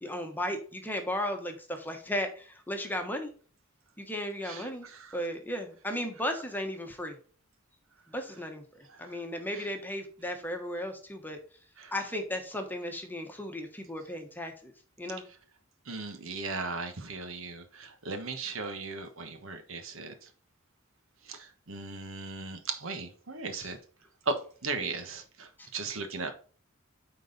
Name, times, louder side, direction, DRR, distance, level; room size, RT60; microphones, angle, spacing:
voice 1, 0.0-3.3 4.0-4.9 5.1-7.2 8.1-11.4 11.9-14.7 15.0-15.2 23.5-23.7 25.6-25.7, left 1 dB, 10° left, 1.2 m, -35 dB
voice 2, 4.4-5.1 8.9-9.2 11.8-11.9 15.9-20.1 21.3-23.8 24.2-24.4 24.6-26.3, right 3 dB, 70° right, 1.2 m, -37 dB
9.2 x 4.0 x 4.0 m
head